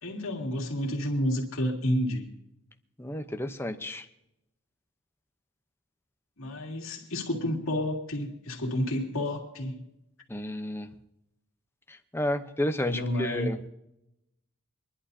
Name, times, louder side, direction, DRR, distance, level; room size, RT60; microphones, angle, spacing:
voice 1, 0.0-2.3 6.4-9.8 12.9-13.5, left 1 dB, 70° left, 0 dB, 2.6 m, -30 dB
voice 2, 3.0-4.1 10.3-10.9 11.9-13.7, left 1 dB, 10° left, 7 dB, 0.8 m, -31 dB
25.5 x 11.5 x 2.8 m, 0.85 s
head